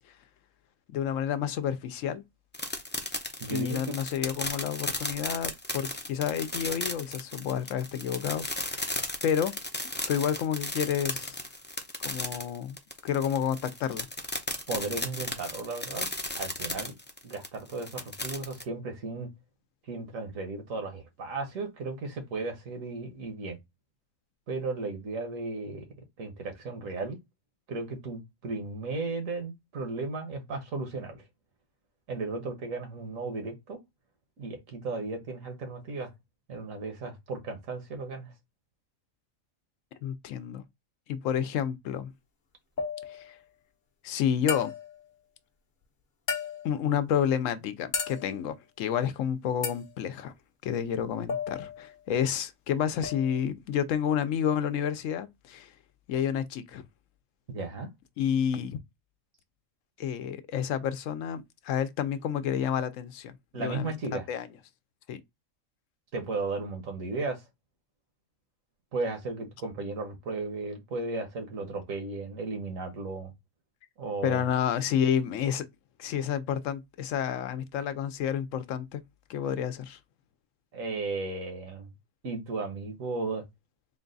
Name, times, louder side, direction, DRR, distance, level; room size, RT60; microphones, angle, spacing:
voice 1, 0.9-2.2 3.5-9.5 10.1-11.4 12.0-12.8 13.0-14.1 40.0-40.6 41.1-42.1 43.1-43.4 44.0-44.7 46.6-50.3 50.6-55.7 56.1-56.8 58.2-58.8 60.0-63.9 64.3-64.5 65.1-65.2 74.2-75.7 76.0-79.0 79.3-80.0, left 8 dB, 75° left, 0.9 m, -30 dB
sound 1, 2.5-18.6, left 2 dB, 15° left, 0.3 m, -35 dB
voice 2, 3.4-4.0 14.7-16.1 16.3-16.9 17.2-19.3 19.9-23.6 24.5-25.9 26.2-27.2 27.7-31.2 32.1-33.8 34.4-36.1 36.5-38.3 57.5-57.9 63.5-64.2 66.1-67.4 68.9-73.3 74.0-74.4 80.7-81.9 82.2-83.4, right 3 dB, 80° right, 1.6 m, -35 dB
sound 2, 42.8-43.4 44.5-45.1 46.3-46.9 47.9-48.5 49.6-49.9 51.3-52.0 53.0-53.4, left 5 dB, 45° left, 0.8 m, -34 dB
3.9 x 2.3 x 3.8 m
omnidirectional pair, 1.4 m